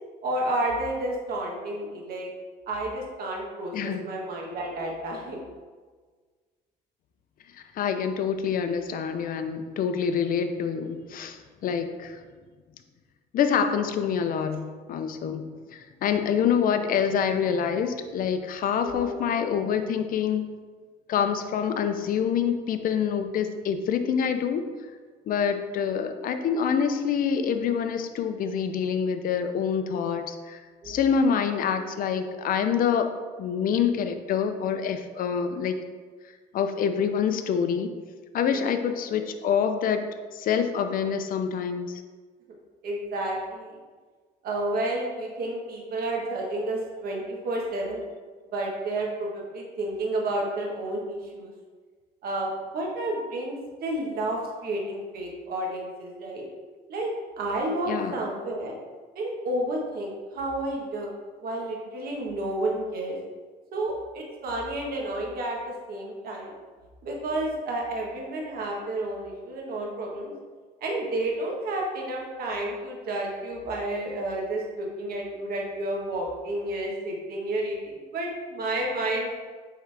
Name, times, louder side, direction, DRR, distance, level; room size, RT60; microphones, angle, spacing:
voice 1, 0.2-2.3 2.7-5.4 18.8-19.1 30.8-31.0 38.5-38.7 42.8-43.7 44.4-48.0 48.5-51.5 52.2-56.5 56.9-57.1 57.4-58.7 59.1-61.1 61.4-63.2 63.7-66.5 67.0-70.3 70.8-79.3, right 1 dB, 60° right, -1 dB, 1.4 m, -31 dB
voice 2, 3.7-4.0 7.7-12.2 13.3-20.5 21.1-24.6 25.3-33.1 33.4-35.8 36.5-37.9 38.3-40.1 40.3-41.9 57.9-58.2, left 7 dB, 55° left, 8 dB, 0.6 m, -26 dB
7.8 x 3.8 x 3.4 m, 1.5 s
cardioid pair, 110°, 17 cm